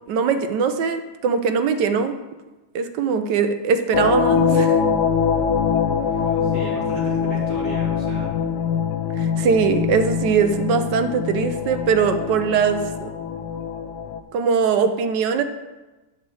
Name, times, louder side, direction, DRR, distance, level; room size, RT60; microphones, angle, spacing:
voice 1, 0.1-2.2 2.7-4.8 9.2-13.1 14.3-15.4, right 5 dB, 85° right, 9 dB, 1.4 m, -21 dB
sound 1, 3.9-14.2, left 7 dB, 80° left, 1.2 m, -23 dB
voice 2, 5.8-8.4, right 1 dB, 40° right, -9 dB, 3.1 m, -38 dB
10.5 x 4.2 x 7.6 m, 1.1 s
omnidirectional pair, 1.8 m